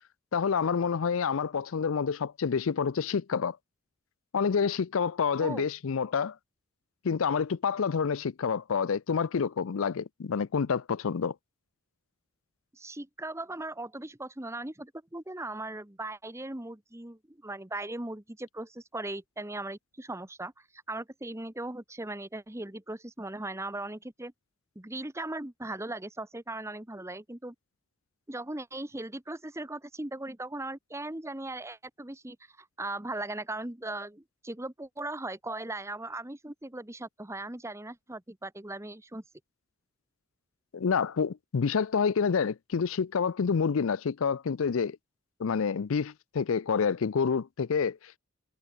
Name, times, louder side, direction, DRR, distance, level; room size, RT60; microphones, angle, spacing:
voice 1, 0.3-3.6 4.3-6.4 7.0-11.3 40.7-45.0 45.4-48.2, left 6 dB, 70° left, 0.5 m, -28 dB
voice 2, 12.7-20.5 20.9-24.3 24.7-27.5 28.3-39.2, right 2 dB, 15° right, 1.1 m, -38 dB
head